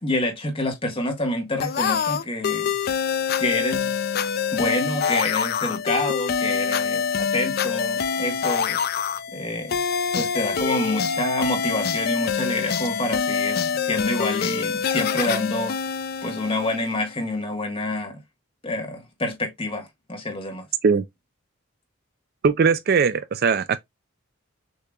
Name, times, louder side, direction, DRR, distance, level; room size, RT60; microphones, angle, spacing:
voice 1, 0.0-2.7 3.4-4.1 4.5-8.8 9.3-9.8 10.1-15.8 16.2-18.2 18.6-20.7, left 2 dB, 25° left, 1.3 m, -27 dB
sound 1, 1.6-17.1, left 6 dB, 45° left, 0.4 m, -25 dB
voice 2, 22.4-23.8, right 5 dB, 45° right, 0.4 m, -20 dB
6.5 x 2.9 x 2.3 m
head